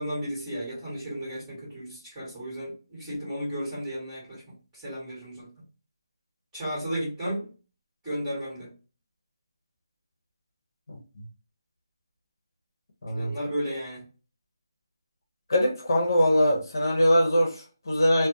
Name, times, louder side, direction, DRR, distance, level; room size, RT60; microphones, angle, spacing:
voice 1, 0.0-5.5 6.5-7.5 8.0-8.7 13.1-14.0, equal, 10° right, 1.5 m, -34 dB
voice 2, 13.0-13.3 15.5-18.3, equal, 55° left, 0.8 m, -22 dB
2.5 x 2.2 x 2.6 m
hypercardioid pair, 170°, 2 cm